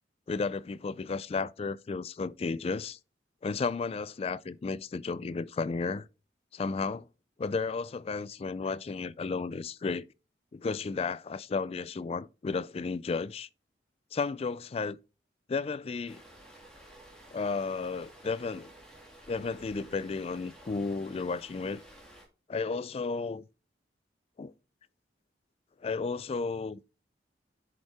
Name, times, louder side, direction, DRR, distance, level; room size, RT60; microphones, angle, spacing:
voice 1, 0.3-3.0 3.4-6.1 6.5-7.1 7.4-10.1 10.5-13.5 14.1-15.0 15.5-16.2 17.3-18.7 19.3-21.8 22.5-23.4 24.4-24.5 25.8-26.8, left 4 dB, 35° left, 0.3 m, -33 dB
sound 1, 16.1-22.2, right 1 dB, 5° left, 2.3 m, -53 dB
9.2 x 5.4 x 3.4 m
head